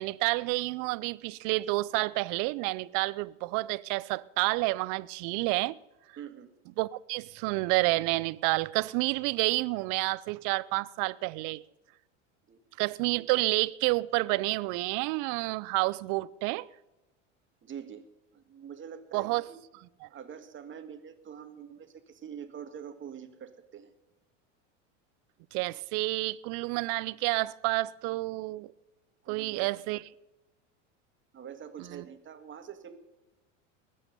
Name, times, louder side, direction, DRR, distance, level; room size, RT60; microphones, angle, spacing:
voice 1, 0.0-5.8 6.8-11.6 12.8-16.7 19.1-19.4 20.0-20.1 25.5-28.7 29.3-30.1 31.9-32.0, right 22 dB, 55° right, 0.6 m, -29 dB
voice 2, 6.2-6.5 12.5-12.6 17.6-18.0 18.3-19.6 20.0-23.9 29.3-29.7 31.3-33.0, right 8 dB, 30° right, 2.0 m, -45 dB
20.5 x 8.8 x 5.3 m
hypercardioid pair, 95°, 37 cm